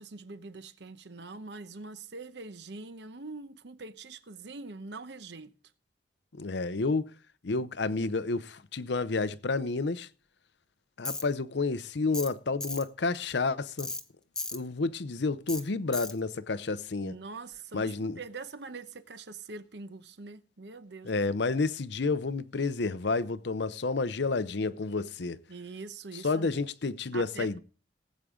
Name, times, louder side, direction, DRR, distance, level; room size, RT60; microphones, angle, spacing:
voice 1, 0.0-5.5 17.0-21.1 25.5-26.6 27.1-27.6, right 3 dB, 65° right, 0.9 m, -43 dB
voice 2, 6.4-7.1 7.4-10.1 11.0-13.9 14.5-17.1 17.7-18.2 21.0-25.4 26.1-27.6, left 3 dB, 70° left, 0.7 m, -30 dB
Tools, 11.1-11.2 12.1-12.3 12.6-12.8 13.8-14.0 14.4-14.6 15.5-15.6 15.9-16.1, left 2 dB, 5° left, 0.7 m, -35 dB
19.0 x 8.3 x 3.7 m
head